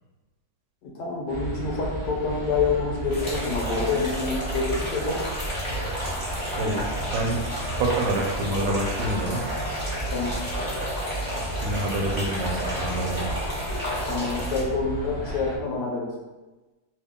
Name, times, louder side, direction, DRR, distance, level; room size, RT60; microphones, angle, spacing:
voice 1, 0.8-5.2 10.1-10.4 14.1-16.1, left 4 dB, 70° left, -2 dB, 1.3 m, -27 dB
sound 1, 1.3-15.6, right 1 dB, 30° right, 0.4 m, -33 dB
sound 2, 3.1-14.6, equal, 15° left, 0.9 m, -32 dB
voice 2, 6.5-7.4 7.7-9.4 11.6-13.3, right 1 dB, 85° right, 1 dB, 1.3 m, -27 dB
2.8 x 2.8 x 3.6 m, 1.1 s
omnidirectional pair, 2.0 m